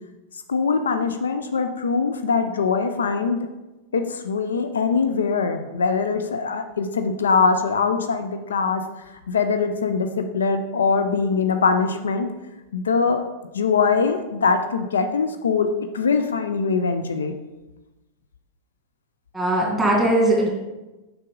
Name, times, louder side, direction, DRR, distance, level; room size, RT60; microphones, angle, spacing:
voice 1, 0.5-3.5 3.9-8.8 9.3-12.3 12.7-13.2 13.5-17.4, left 5 dB, 70° left, 7 dB, 0.5 m, -22 dB
voice 2, 19.3-20.5, right 1 dB, 5° right, -2 dB, 2.3 m, -19 dB
6.5 x 6.0 x 3.7 m, 1.1 s
figure-of-eight pair, 90°, 0 cm